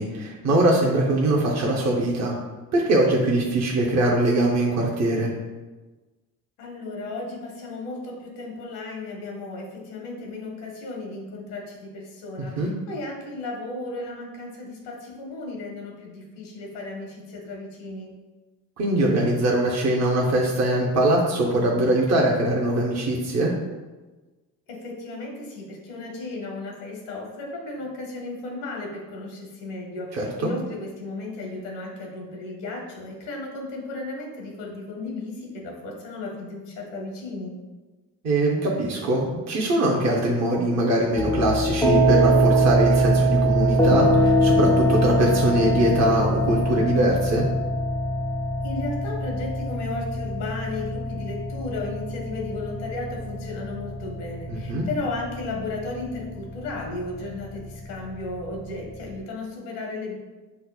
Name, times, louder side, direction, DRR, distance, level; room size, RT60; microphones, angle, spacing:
voice 1, 0.0-2.4 2.7-5.3 12.4-12.7 18.8-23.5 30.1-30.5 38.2-47.5 54.5-54.9, right 1 dB, 35° right, -3 dB, 0.7 m, -22 dB
voice 2, 6.6-18.1 24.7-37.5 48.6-60.2, left 2 dB, 85° left, 0 dB, 0.9 m, -34 dB
sound 1, 41.2-59.1, right 1 dB, 5° left, 0.4 m, -23 dB
5.2 x 2.0 x 2.3 m, 1.2 s
hypercardioid pair, 50°, 45 cm